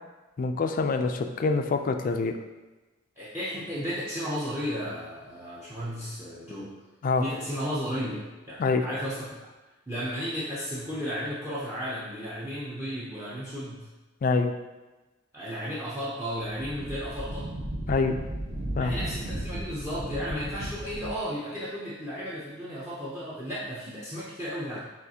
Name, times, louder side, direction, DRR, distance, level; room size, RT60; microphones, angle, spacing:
voice 1, 0.4-2.3 7.0-7.2 8.6-8.9 14.2-14.5 17.9-18.2 18.8-19.0, left 4 dB, 45° left, 6 dB, 0.3 m, -25 dB
voice 2, 3.2-6.7 7.2-9.5 9.9-13.9 15.3-17.5 18.8-24.8, equal, 15° right, -8 dB, 0.6 m, -34 dB
Wind, 16.5-21.2, right 1 dB, 45° right, 0.8 m, -35 dB
6.4 x 2.5 x 2.8 m, 1.1 s
head